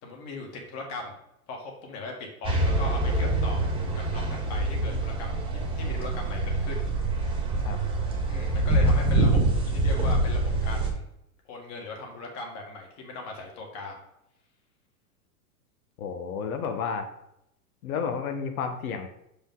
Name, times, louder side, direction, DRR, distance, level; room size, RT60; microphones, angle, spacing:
voice 1, 0.0-1.1 1.5-3.7 3.9-6.8 8.3-11.0 11.5-14.0, left 3 dB, 35° left, 1 dB, 2.0 m, -39 dB
sound 1, 2.4-10.9, right 2 dB, 10° right, 1.6 m, -25 dB
voice 2, 16.0-17.1 17.8-19.1, left 6 dB, 70° left, 6 dB, 1.4 m, -31 dB
6.3 x 5.2 x 3.9 m, 0.79 s
supercardioid pair, 140°, 44 cm